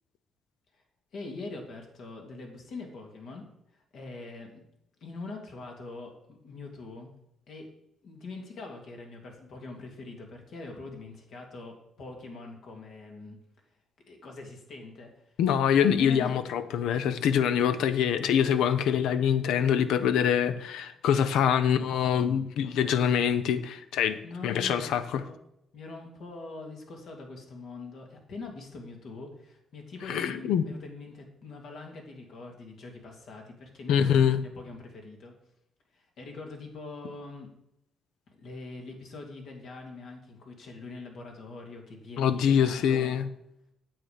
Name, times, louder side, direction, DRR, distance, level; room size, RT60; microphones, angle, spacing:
voice 1, 1.1-3.4 3.7-4.6 5.0-7.1 7.5-7.7 8.0-13.4 14.1-15.3 15.7-16.4 24.2-25.4 25.7-35.3 35.9-37.5 38.3-43.2, left 3 dB, 70° left, 2 dB, 2.5 m, -43 dB
voice 2, 15.4-24.2 24.4-25.2 30.1-30.7 33.9-34.4 42.2-43.3, left 8 dB, 85° left, 12 dB, 0.7 m, -24 dB
9.0 x 7.6 x 5.1 m, 0.80 s
cardioid pair, 90°, 0 cm